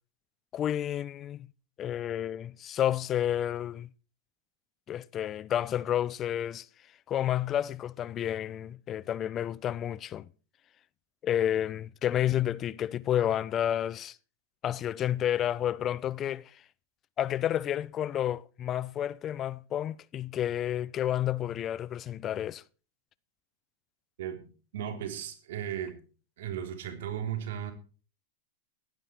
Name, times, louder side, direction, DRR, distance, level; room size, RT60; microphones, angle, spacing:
voice 1, 0.5-1.5 1.8-3.9 4.9-6.7 7.1-10.3 11.2-14.2 14.6-16.5 17.2-22.6, left 11 dB, 30° left, 0.6 m, -30 dB
voice 2, 24.7-26.0 26.4-27.7, right 9 dB, 70° right, 3.4 m, -35 dB
15.5 x 11.0 x 4.5 m
hypercardioid pair, 125°, 0 cm